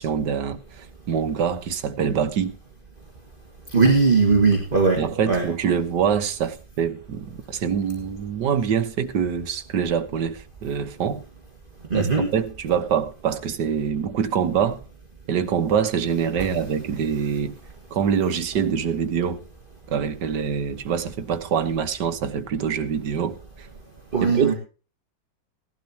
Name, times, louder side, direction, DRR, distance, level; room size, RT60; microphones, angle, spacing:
voice 1, 0.0-2.6 5.0-11.2 11.9-14.8 15.3-17.6 17.9-19.4 19.9-23.7 24.2-24.5, right 7 dB, 75° right, 1.7 m, -25 dB
voice 2, 3.7-5.0 5.3-5.4 11.9-12.3 24.1-24.5, right 4 dB, 30° right, 2.0 m, -19 dB
17.5 x 12.0 x 2.9 m
omnidirectional pair, 1.9 m